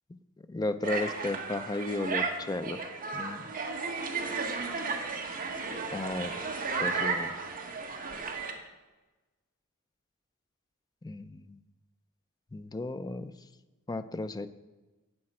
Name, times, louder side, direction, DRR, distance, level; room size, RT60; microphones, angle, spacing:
voice 1, 0.5-2.8 3.1-3.5 5.9-6.4 6.8-7.4 11.0-11.6 12.5-13.3 13.9-14.5, left 2 dB, 20° left, 11 dB, 0.4 m, -34 dB
sound 1, 0.8-8.5, right 4 dB, 40° right, 1.3 m, -34 dB
12.5 x 8.6 x 4.3 m, 1.2 s
head